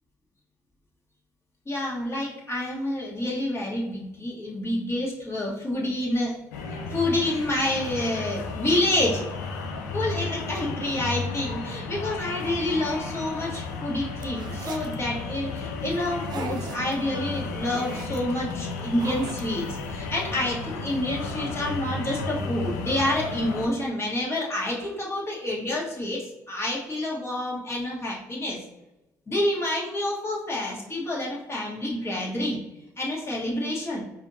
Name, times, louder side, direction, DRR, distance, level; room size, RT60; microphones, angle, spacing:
voice 1, 1.6-6.4 6.9-9.2 9.9-28.6 29.3-32.6 33.0-34.0, left 1 dB, 30° left, -3 dB, 1.4 m, -28 dB
sound 1, 6.5-23.7, left 4 dB, 80° left, 0.4 m, -33 dB
sound 2, 14.2-14.9 16.0-17.0 17.4-18.2 18.7-19.7, right 4 dB, 50° right, 0.5 m, -39 dB
4.8 x 2.6 x 2.7 m, 0.98 s
hypercardioid pair, 50°, 9 cm